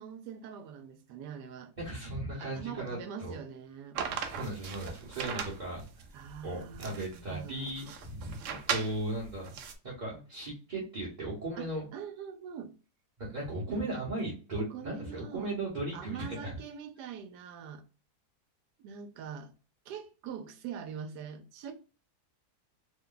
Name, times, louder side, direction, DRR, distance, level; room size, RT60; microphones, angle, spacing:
voice 1, 0.0-1.7 2.4-4.0 6.1-7.7 11.6-12.7 13.7-13.8 14.7-15.5 15.9-17.8 18.8-19.5 19.9-21.7, right 7 dB, 90° right, 1.2 m, -43 dB
voice 2, 1.8-3.4 4.3-5.8 6.4-8.4 8.7-9.5 9.8-11.9 13.2-16.5, right 1 dB, 35° right, 1.0 m, -37 dB
sound 1, 4.0-9.7, right 6 dB, 65° right, 0.8 m, -38 dB
3.0 x 2.2 x 3.8 m
omnidirectional pair, 1.7 m